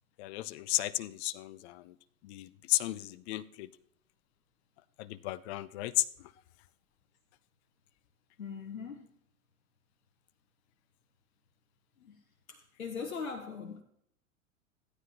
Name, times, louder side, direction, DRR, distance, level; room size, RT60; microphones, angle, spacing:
voice 1, 0.2-1.9 2.2-3.7 5.0-6.1, left 17 dB, 55° left, 0.6 m, -34 dB
voice 2, 8.4-9.1 12.0-12.2 12.5-13.8, left 5 dB, 85° left, 1.1 m, -41 dB
14.5 x 9.6 x 2.9 m
hypercardioid pair, 90°, 40 cm